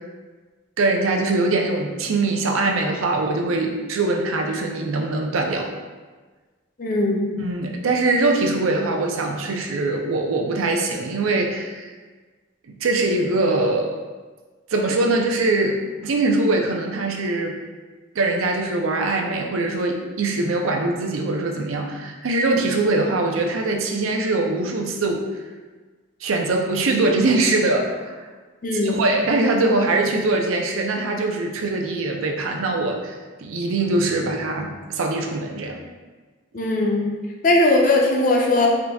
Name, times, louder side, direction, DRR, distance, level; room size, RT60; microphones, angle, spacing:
voice 1, 0.8-5.7 7.4-11.9 12.8-14.0 14.7-17.6 18.1-25.2 26.2-28.3 28.8-33.1 33.4-35.8, right 2 dB, 85° right, 2 dB, 0.5 m, -22 dB
voice 2, 6.8-7.3 28.6-29.0 36.5-37.1 37.4-38.7, left 2 dB, 40° left, 0 dB, 0.5 m, -19 dB
3.8 x 2.2 x 3.4 m, 1.3 s
head